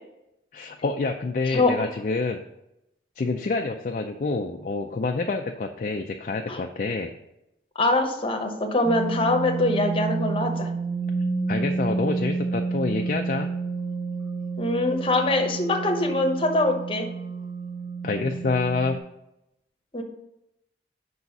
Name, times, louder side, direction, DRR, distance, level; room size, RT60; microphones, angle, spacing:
voice 1, 0.5-2.4 3.2-7.1 11.5-13.5 18.0-19.0, left 3 dB, 45° left, 4 dB, 0.4 m, -27 dB
voice 2, 7.7-10.7 14.6-17.1 19.9-20.0, left 2 dB, 30° left, 3 dB, 0.8 m, -23 dB
sound 1, 8.8-19.0, right 4 dB, 5° right, 0.6 m, -30 dB
5.5 x 4.0 x 5.9 m, 0.86 s
head